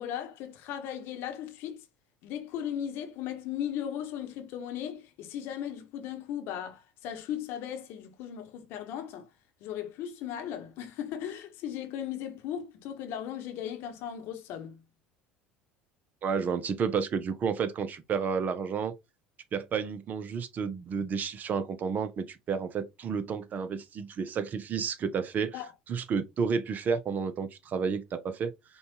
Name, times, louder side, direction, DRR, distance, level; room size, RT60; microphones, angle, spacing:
voice 1, 0.0-1.8 2.2-9.3 9.6-14.8 25.5-25.7, left 10 dB, 60° left, 0.9 m, -37 dB
voice 2, 16.2-18.9 19.5-25.6 25.9-28.5, right 6 dB, 40° right, 0.7 m, -31 dB
5.1 x 2.4 x 2.8 m
hypercardioid pair, 70°, 4 cm